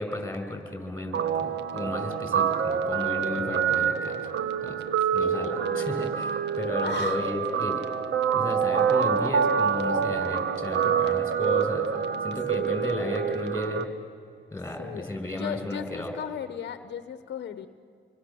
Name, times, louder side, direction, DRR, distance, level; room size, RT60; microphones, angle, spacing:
voice 1, 0.0-4.2 4.6-4.8 5.1-7.8 8.3-13.9 14.5-16.1, left 2 dB, 10° left, 5 dB, 6.3 m, -33 dB
Guitar, 1.1-13.8, right 7 dB, 60° right, 1.4 m, -26 dB
voice 2, 5.4-6.0 6.8-7.2 12.6-12.7 14.8-17.7, left 8 dB, 60° left, 10 dB, 1.2 m, -37 dB
27.5 x 24.0 x 7.2 m, 2.5 s
cardioid pair, 90°, 20 cm